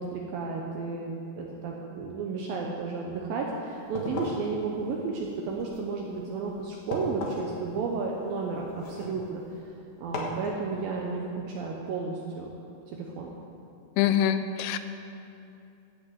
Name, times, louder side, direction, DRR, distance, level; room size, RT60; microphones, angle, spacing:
voice 1, 0.0-9.4 10.0-12.6 12.9-13.3, right 4 dB, 75° right, -1 dB, 2.2 m, -33 dB
sound 1, 3.7-9.6 10.1-10.5, left 2 dB, 65° left, 1.9 m, -39 dB
voice 2, 14.0-14.8, left 10 dB, 90° left, 10 dB, 2.9 m, -24 dB
13.0 x 6.0 x 7.9 m, 2.7 s
omnidirectional pair, 5.1 m